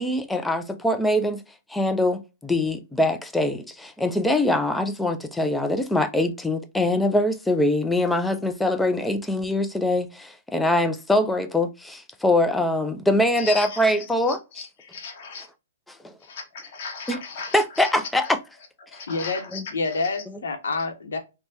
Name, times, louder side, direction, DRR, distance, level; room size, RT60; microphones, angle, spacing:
voice 1, 0.0-1.4 1.7-14.4 15.9-16.1 17.1-17.2 17.5-18.4 19.5-19.6, left 1 dB, 5° left, 0.3 m, -23 dB
voice 2, 13.4-13.8 14.3-15.5 16.2-17.9 18.2-18.3 18.9-19.6 19.9-20.2, left 5 dB, 50° left, 0.8 m, -37 dB
voice 3, 19.1-21.2, left 3 dB, 85° left, 0.7 m, -28 dB
3.2 x 2.1 x 2.8 m
hypercardioid pair, 145°, 0 cm